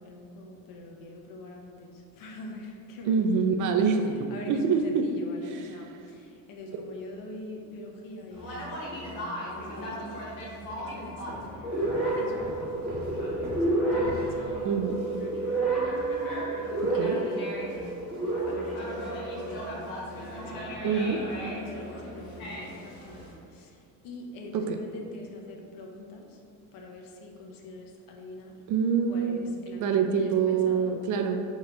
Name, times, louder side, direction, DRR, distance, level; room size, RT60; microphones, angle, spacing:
voice 1, 0.0-3.2 3.6-3.8 4.3-10.5 10.8-15.7 16.9-17.8 18.5-26.4 26.7-28.6 29.1-31.0, left 2 dB, 55° left, 1 dB, 0.8 m, -44 dB
voice 2, 3.1-5.1 5.5-5.6 14.6-15.1 16.8-17.2 20.8-21.3 24.5-24.8 28.7-29.4 29.8-31.4, right 6 dB, 50° right, 5 dB, 0.4 m, -26 dB
Conversation, 8.3-23.3, equal, 90° left, 1.4 m, -40 dB
sound 1, 11.3-15.0, left 1 dB, 25° right, 1.0 m, -42 dB
sound 2, 11.6-19.6, right 2 dB, ahead, 1.5 m, -30 dB
4.1 x 3.0 x 3.7 m, 2.5 s
supercardioid pair, 100°, 40 cm